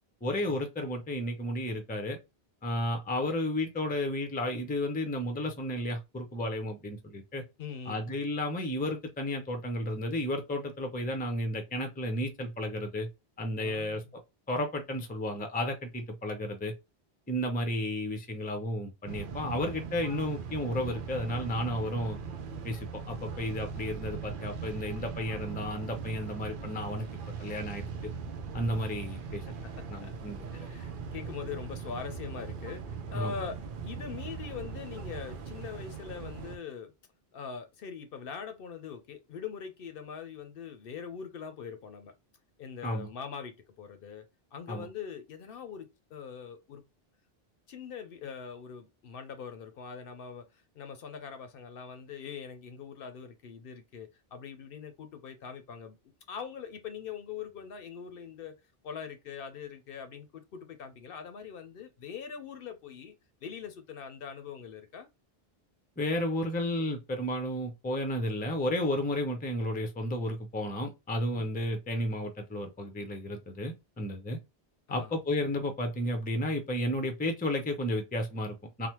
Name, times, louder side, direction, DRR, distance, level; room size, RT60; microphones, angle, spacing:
voice 1, 0.2-2.2 2.6-7.4 7.9-13.1 13.4-14.0 14.5-16.7 17.3-22.2 22.6-27.1 27.4-27.8 28.5-29.4 29.9-30.7 33.1-33.3 42.8-43.1 44.7-44.9 66.0-74.4 74.9-78.9, left 1 dB, 10° left, 0.5 m, -32 dB
voice 2, 7.6-8.1 13.6-14.0 29.5-30.1 30.5-36.9 37.3-42.1 42.6-44.2 44.5-46.8 47.7-56.0 56.3-63.1 63.4-65.1 71.4-71.5 74.9-75.1, left 6 dB, 65° left, 0.7 m, -42 dB
sound 1, 19.1-36.6, right 5 dB, 60° right, 0.7 m, -40 dB
3.3 x 2.0 x 2.9 m
omnidirectional pair, 1.0 m